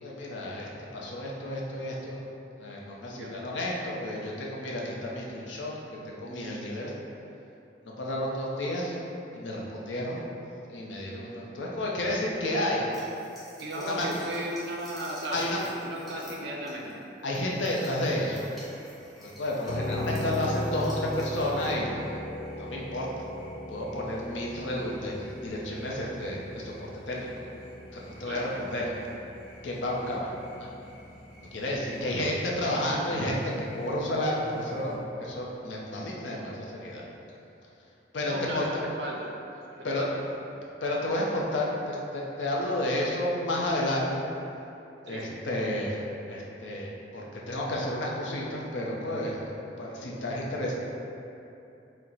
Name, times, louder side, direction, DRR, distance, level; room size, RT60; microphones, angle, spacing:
voice 1, 0.0-2.2 2.6-5.7 6.0-6.9 7.8-9.0 9.3-10.2 10.7-12.9 13.7-14.1 15.3-15.6 17.2-18.5 19.2-21.9 22.6-23.1 23.7-27.3 27.9-28.9 29.6-30.3 30.6-30.7 31.5-37.0 38.1-38.8 39.8-40.1 40.8-44.2 45.1-46.0 46.3-49.4 49.8-50.7, left 1 dB, 90° left, -3 dB, 0.6 m, -31 dB
sound 1, 12.9-21.8, equal, ahead, 0.6 m, -51 dB
voice 2, 13.5-17.0 28.2-28.4 30.0-30.1 32.0-32.2 38.2-39.4 39.7-40.1 45.1-45.3, right 1 dB, 70° right, -1 dB, 0.5 m, -36 dB
sound 2, 17.9-35.0, equal, 20° left, 1.0 m, -53 dB
sound 3, 19.7-33.4, left 1 dB, 50° left, 0.4 m, -39 dB
4.4 x 2.1 x 3.8 m, 2.8 s
head